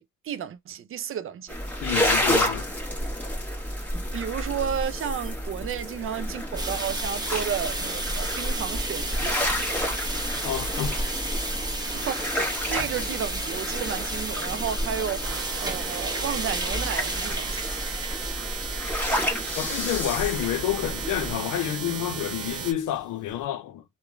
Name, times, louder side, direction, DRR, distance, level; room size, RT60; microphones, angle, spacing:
voice 1, 0.0-1.6 4.1-9.4 11.8-12.4 12.7-15.3 15.6-17.6, right 8 dB, 45° right, 0.4 m, -32 dB
sound 1, 1.5-21.3, equal, 5° left, 1.3 m, -30 dB
voice 2, 1.8-2.7 10.4-11.0 19.6-23.8, left 12 dB, 90° left, 0.6 m, -29 dB
sound 2, 6.6-23.4, right 2 dB, 15° right, 0.8 m, -34 dB
sound 3, 15.2-22.7, right 6 dB, 65° right, 0.8 m, -35 dB
2.9 x 2.1 x 2.4 m
cardioid pair, 90°, 30 cm